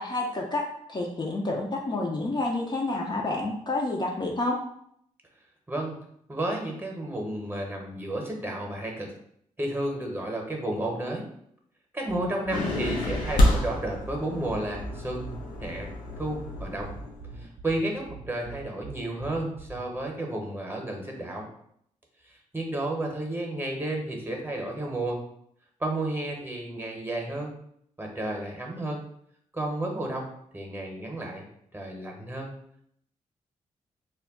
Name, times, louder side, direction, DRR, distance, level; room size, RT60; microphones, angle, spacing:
voice 1, 0.0-4.6, left 2 dB, 30° left, -1 dB, 0.4 m, -29 dB
voice 2, 6.3-9.1 9.6-11.3 11.9-15.3 15.6-15.9 16.2-16.9 17.4-21.5 22.3-25.2 25.8-27.5 28.0-29.0 29.5-31.5 31.7-32.5, right 1 dB, 15° right, 1 dB, 0.8 m, -32 dB
sound 1, 12.1-20.1, right 5 dB, 70° right, 0.4 m, -44 dB
sound 2, 12.5-17.3, left 1 dB, 90° left, 0.5 m, -28 dB
2.2 x 2.1 x 3.5 m, 0.70 s
cardioid pair, 55°, 14 cm